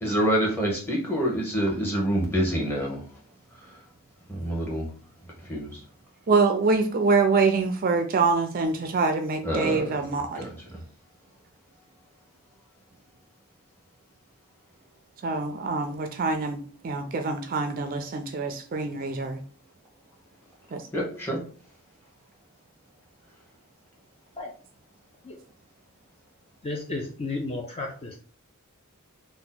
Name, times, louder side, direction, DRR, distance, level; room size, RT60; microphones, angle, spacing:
voice 1, 0.0-3.0 3.6-3.8 4.3-4.9 5.2-5.8 9.4-10.0 10.3-10.8 20.9-21.4, equal, 10° left, -3 dB, 1.0 m, -27 dB
voice 2, 6.3-10.5 15.2-19.4 20.7-20.8, right 4 dB, 40° right, 6 dB, 0.4 m, -25 dB
voice 3, 26.6-28.1, left 2 dB, 25° left, 0 dB, 0.4 m, -33 dB
2.8 x 2.1 x 3.8 m, 0.41 s
head